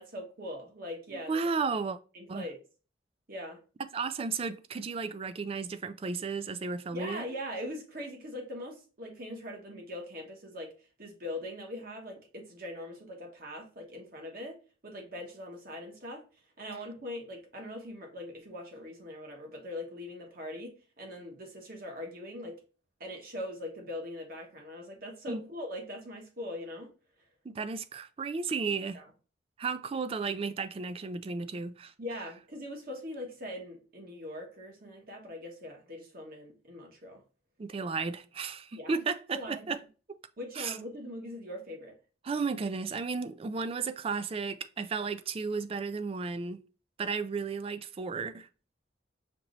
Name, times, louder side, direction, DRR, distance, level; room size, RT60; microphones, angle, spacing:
voice 1, 0.0-1.3 2.1-2.6 3.3-3.6 6.9-10.7 11.0-14.6 14.8-16.2 16.6-22.6 23.0-26.9 28.9-29.1 32.0-37.2 38.7-38.9 39.3-39.6 40.4-41.9, left 1 dB, 50° right, 1.3 m, -41 dB
voice 2, 1.1-2.0 2.3-2.5 3.9-7.2 25.3-25.5 27.4-29.0 29.6-31.9 37.6-39.8 40.1-40.2 40.6-40.8 42.2-46.6 47.0-48.5, right 4 dB, 30° right, 0.3 m, -34 dB
5.9 x 3.0 x 2.5 m
head